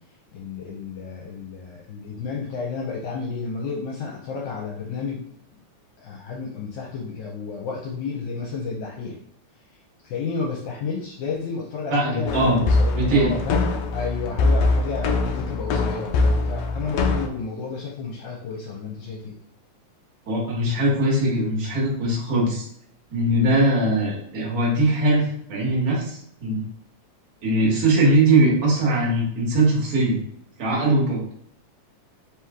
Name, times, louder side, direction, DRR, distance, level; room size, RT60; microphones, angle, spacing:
voice 1, 0.3-5.3 6.0-9.2 10.0-12.3 12.6-19.4, left 5 dB, 75° left, -4 dB, 2.0 m, -31 dB
voice 2, 11.9-12.6 12.9-13.3 20.3-22.7 23.1-26.6 27.4-30.2 30.6-31.2, right 1 dB, 45° right, -4 dB, 1.1 m, -21 dB
sound 1, 12.3-17.3, left 3 dB, 90° left, 1.5 m, -22 dB
4.7 x 3.1 x 3.5 m, 0.69 s
omnidirectional pair, 3.6 m